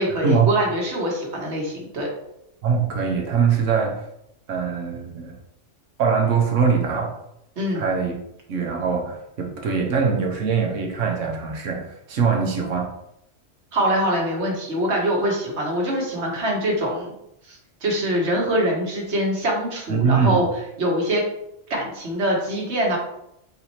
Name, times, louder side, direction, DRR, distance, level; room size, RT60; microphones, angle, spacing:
voice 1, 0.0-2.1 7.6-7.8 13.7-17.1 17.5-20.5 20.8-21.2 21.7-23.0, right 1 dB, 65° right, -1 dB, 1.4 m, -24 dB
voice 2, 2.6-4.0 4.5-5.4 6.0-7.2 7.7-8.1 8.5-12.9 19.9-20.4, right 6 dB, 85° right, 1 dB, 1.2 m, -22 dB
4.1 x 4.0 x 3.0 m, 0.81 s
omnidirectional pair, 1.3 m